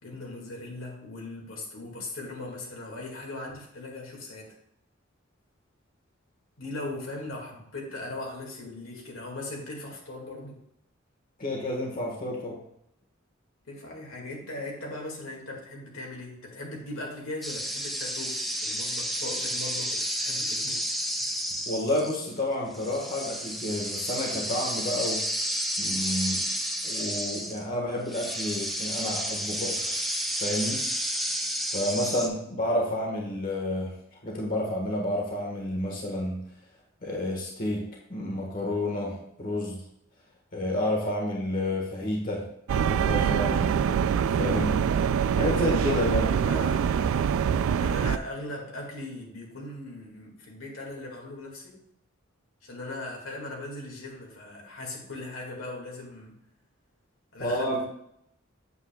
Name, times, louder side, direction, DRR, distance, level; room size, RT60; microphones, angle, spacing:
voice 1, 0.0-4.6 6.6-10.6 13.7-20.8 32.4-32.5 45.6-47.1 47.8-51.8 52.6-56.4 57.3-57.8, left 2 dB, 85° left, -1 dB, 2.1 m, -39 dB
voice 2, 11.4-12.6 21.7-25.2 25.8-26.4 26.8-29.7 30.4-30.8 31.7-33.9 34.2-36.4 37.0-37.8 38.1-39.8 40.5-42.4 42.7-43.7 44.4-44.8 45.3-46.3 57.4-57.8, left 1 dB, 45° left, -2 dB, 1.5 m, -30 dB
sound 1, 17.4-22.4 22.7-27.6 28.1-32.3, equal, ahead, 0.6 m, -31 dB
sound 2, 42.7-48.2, right 7 dB, 80° right, 0.3 m, -24 dB
8.2 x 7.1 x 2.3 m, 0.75 s
head